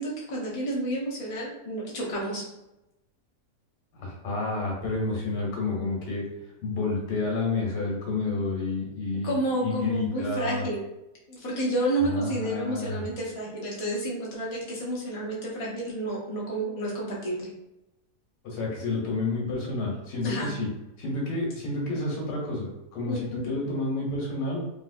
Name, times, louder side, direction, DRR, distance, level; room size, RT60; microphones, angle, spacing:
voice 1, 0.0-2.4 9.2-10.9 11.3-17.5 20.2-20.5 23.1-23.6, right 1 dB, 35° left, -5 dB, 0.6 m, -30 dB
voice 2, 4.0-6.2 6.6-10.6 12.0-13.1 18.4-20.7 21.0-24.6, left 3 dB, 85° left, -3 dB, 1.5 m, -30 dB
2.9 x 2.8 x 2.5 m, 0.93 s
omnidirectional pair, 1.7 m